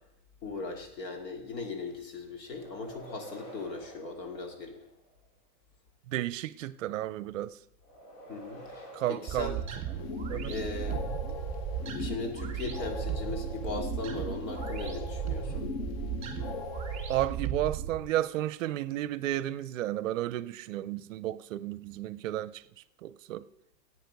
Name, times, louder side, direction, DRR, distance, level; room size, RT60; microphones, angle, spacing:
voice 1, 0.4-4.8 8.3-9.6 10.5-11.0 12.0-15.7, left 3 dB, 85° left, 3.1 m, -38 dB
sound 1, 2.5-5.2 7.8-10.5, right 1 dB, 60° left, 4.1 m, -50 dB
voice 2, 6.1-7.5 8.9-9.6 10.3-10.5 17.1-22.6 23.0-23.4, right 13 dB, 55° right, 0.6 m, -32 dB
sound 2, 9.3-18.0, right 8 dB, 15° right, 1.8 m, -36 dB
sound 3, 9.9-17.3, left 6 dB, 40° left, 0.6 m, -40 dB
15.0 x 8.6 x 5.3 m
supercardioid pair, 160°, 49 cm